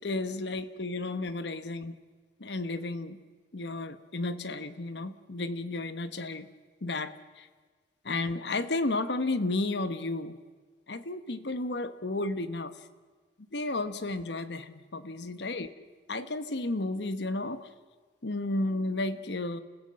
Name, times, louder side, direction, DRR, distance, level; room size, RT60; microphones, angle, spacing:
voice 1, 0.0-2.0 2.4-3.2 3.5-6.5 6.8-7.5 8.0-10.4 10.9-12.8 13.5-15.7 16.1-17.7 18.2-19.6, left 2 dB, 70° left, 12 dB, 1.1 m, -32 dB
29.5 x 15.5 x 7.6 m, 1.5 s
head